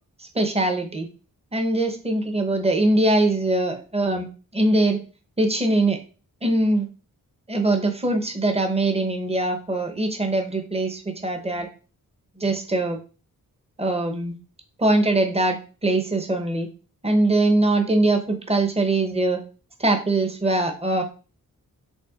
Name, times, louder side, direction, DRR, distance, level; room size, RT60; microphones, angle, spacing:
voice 1, 0.2-1.1 1.5-4.3 4.5-5.0 5.4-6.0 6.4-6.9 7.5-11.7 12.4-13.0 13.8-14.4 14.8-16.7 17.0-19.4 19.8-21.0, right 2 dB, 15° right, 4 dB, 0.8 m, -22 dB
5.4 x 3.5 x 2.4 m, 0.34 s
wide cardioid pair, 85°, 35 cm